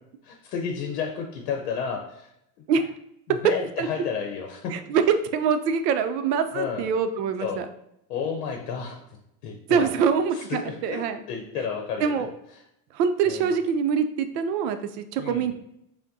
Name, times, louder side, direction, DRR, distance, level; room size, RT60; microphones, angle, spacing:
voice 1, 0.2-2.3 3.3-4.7 6.5-6.9 7.4-7.6 8.1-9.0 9.4-9.9 10.4-11.0 11.3-12.3 13.2-13.5 15.2-15.5, left 6 dB, 80° left, 3 dB, 0.7 m, -31 dB
voice 2, 3.3-3.9 4.7-7.7 9.7-11.2 11.6-11.7 12.0-12.3 12.9-15.5, right 6 dB, 85° right, 9 dB, 0.6 m, -24 dB
5.8 x 2.1 x 2.7 m, 0.79 s
supercardioid pair, 165°, 47 cm